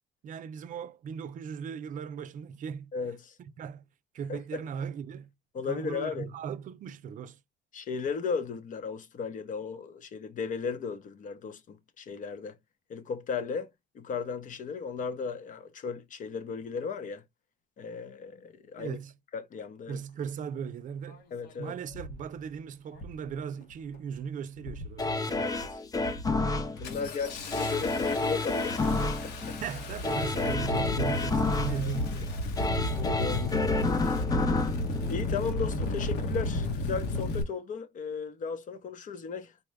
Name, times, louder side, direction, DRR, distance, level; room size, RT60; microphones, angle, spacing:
voice 1, 0.2-2.9 3.6-3.9 4.1-5.3 5.6-7.4 18.8-19.2 19.9-21.3 21.6-25.5 29.6-32.4, right 7 dB, 50° right, 0.5 m, -38 dB
voice 2, 2.9-3.3 4.3-4.6 5.5-6.3 7.7-12.5 12.9-13.7 13.9-17.2 17.8-19.0 19.3-20.0 21.3-21.7 25.4-25.8 26.8-29.6 32.9-34.1 35.1-39.5, left 5 dB, 50° left, 0.8 m, -36 dB
Engine starting, 21.1-21.2 21.9-22.2 22.9-23.3 23.6-24.1 24.6-25.1 25.5-25.7 26.0-37.4, left 1 dB, 75° left, 1.1 m, -33 dB
sound 1, 25.0-35.9 36.4-36.5, left 3 dB, 20° left, 0.7 m, -30 dB
4.2 x 2.2 x 3.2 m
cardioid pair, 110°, 17 cm